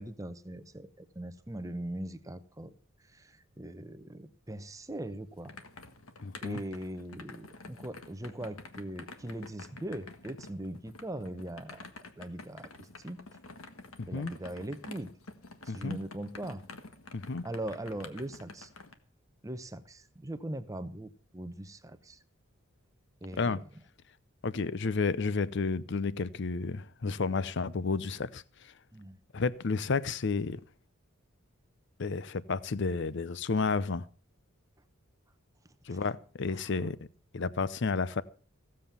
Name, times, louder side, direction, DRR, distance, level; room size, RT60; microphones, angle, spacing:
voice 1, 0.0-2.7 3.1-5.5 6.4-11.9 12.2-13.2 14.1-15.1 15.6-16.6 17.4-18.7 19.4-22.2 23.2-23.6 28.9-29.2 35.9-36.0 36.5-36.6, right 1 dB, 15° right, 0.8 m, -40 dB
sound 1, 4.9-18.9, left 3 dB, 85° left, 1.6 m, -49 dB
voice 2, 6.2-6.6 14.0-14.3 15.7-16.0 17.1-17.4 23.3-23.6 24.4-28.7 29.3-30.6 32.0-34.1 35.9-37.0 37.3-38.2, left 4 dB, 55° left, 0.6 m, -31 dB
16.0 x 7.6 x 6.8 m
head